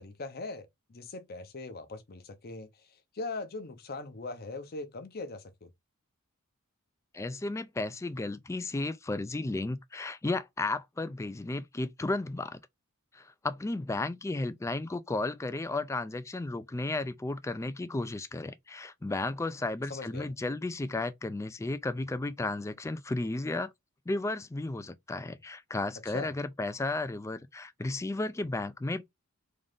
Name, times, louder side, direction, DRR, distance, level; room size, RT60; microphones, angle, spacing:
voice 1, 0.0-5.7 19.9-20.3 26.1-26.3, left 3 dB, 45° left, 0.7 m, -40 dB
voice 2, 7.1-12.6 13.1-23.7 24.1-29.1, left 2 dB, 15° left, 0.3 m, -34 dB
3.8 x 2.5 x 3.4 m
head